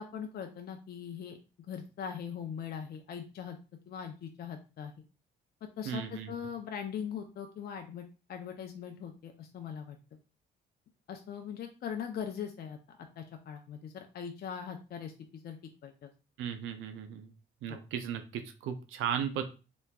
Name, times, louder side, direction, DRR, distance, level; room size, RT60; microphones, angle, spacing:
voice 1, 0.0-1.4 1.7-3.6 3.9-4.9 5.8-8.0 8.3-10.0 11.1-15.6 15.8-16.1 17.7-17.8, left 7 dB, 50° left, 4 dB, 0.5 m, -41 dB
voice 2, 5.9-6.3 16.4-17.3 17.6-19.4, right 8 dB, 90° right, 8 dB, 0.4 m, -36 dB
3.4 x 3.0 x 2.2 m, 0.32 s
cardioid pair, 90°, 20 cm